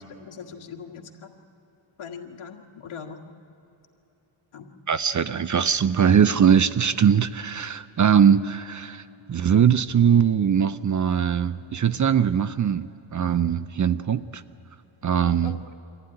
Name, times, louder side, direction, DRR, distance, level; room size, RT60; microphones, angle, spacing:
voice 1, 0.2-1.3 2.0-3.2 4.5-4.7 15.4-15.7, left 6 dB, 80° left, 2 dB, 1.7 m, -40 dB
voice 2, 4.9-9.0 9.3-14.4 15.0-15.6, right 8 dB, 40° right, 13 dB, 0.5 m, -21 dB
23.5 x 15.5 x 9.8 m, 2.9 s
wide cardioid pair, 130°, 49 cm